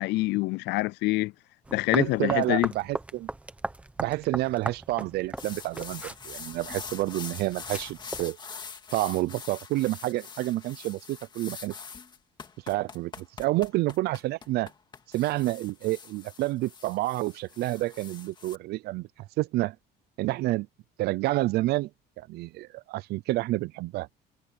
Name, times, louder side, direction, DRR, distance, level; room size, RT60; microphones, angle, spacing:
voice 1, 0.0-1.3 1.7-2.7, left 20 dB, 65° left, 0.4 m, -26 dB
sound 1, 1.6-8.2, right 2 dB, 5° right, 1.0 m, -38 dB
voice 2, 1.9-3.3 4.0-8.4 8.9-11.7 12.7-14.7 15.1-19.1 19.4-19.8 20.2-20.7 21.0-21.9 22.2-24.1, right 18 dB, 60° right, 0.5 m, -29 dB
sound 2, 5.4-18.5, left 5 dB, 25° left, 2.0 m, -43 dB
cardioid pair, 165°, 19 cm